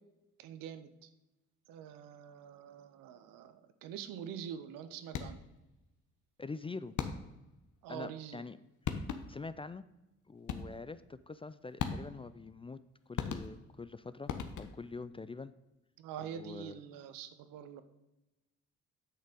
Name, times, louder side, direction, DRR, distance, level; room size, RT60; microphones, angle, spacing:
voice 1, 0.4-1.1 1.7-5.4 7.8-8.4 16.0-17.8, right 9 dB, 75° right, 11 dB, 0.8 m, -45 dB
sound 1, 5.1-5.6 7.0-7.5 8.5-8.6 8.9-9.5 10.5-10.9 11.8-12.3 13.2-13.8 14.3-15.0, left 7 dB, 60° left, 1.0 m, -38 dB
voice 2, 6.4-6.9 7.9-8.6 9.3-9.8 10.3-12.8 13.1-14.3 14.6-15.5 16.2-16.8, left 3 dB, 15° left, 14 dB, 0.4 m, -44 dB
7.9 x 6.5 x 5.2 m, 0.96 s
hypercardioid pair, 55°, 33 cm